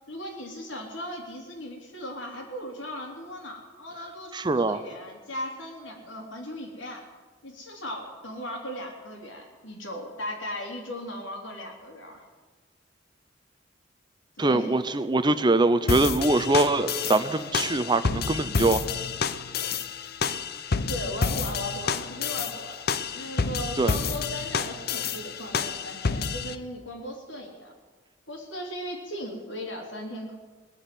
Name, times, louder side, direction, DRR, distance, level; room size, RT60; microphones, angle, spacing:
voice 1, 0.1-7.0 7.4-12.2 14.4-14.8 20.9-22.8 23.1-27.7 28.3-30.4, equal, 85° left, 1 dB, 3.5 m, -37 dB
voice 2, 4.3-4.8 14.4-18.8 23.8-23.9, right 2 dB, 25° right, 12 dB, 0.6 m, -23 dB
sound 1, 15.9-26.6, left 5 dB, 55° left, 0.6 m, -29 dB
18.5 x 7.0 x 9.5 m, 1.4 s
head